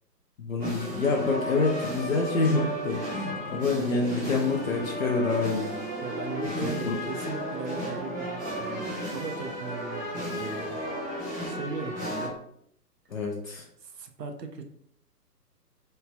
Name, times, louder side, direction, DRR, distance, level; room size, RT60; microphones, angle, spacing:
voice 1, 0.4-5.7 6.6-7.0 13.1-13.6, left 3 dB, 55° left, -1 dB, 0.6 m, -27 dB
sound 1, 0.6-12.3, equal, 15° right, 0.6 m, -34 dB
voice 2, 6.0-12.3 13.8-14.6, right 5 dB, 75° right, 6 dB, 0.7 m, -38 dB
3.2 x 2.4 x 3.2 m, 0.71 s
figure-of-eight pair, 130°, 49 cm